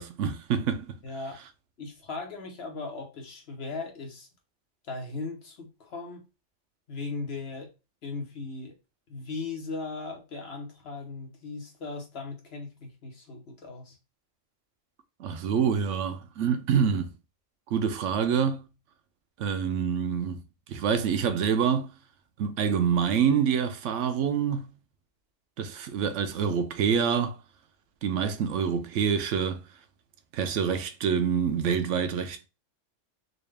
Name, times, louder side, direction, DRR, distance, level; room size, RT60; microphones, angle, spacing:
voice 1, 0.0-1.0 15.2-17.1 17.7-18.7 19.4-20.4 20.7-21.9 22.4-24.7 25.6-27.4 28.0-29.6 30.3-32.5, right 7 dB, 85° right, 0.9 m, -26 dB
voice 2, 1.0-1.3 1.8-4.3 4.8-6.2 6.9-7.7 8.0-8.7 9.1-14.0, left 3 dB, 60° left, 1.2 m, -38 dB
4.0 x 2.4 x 3.3 m
omnidirectional pair, 1.2 m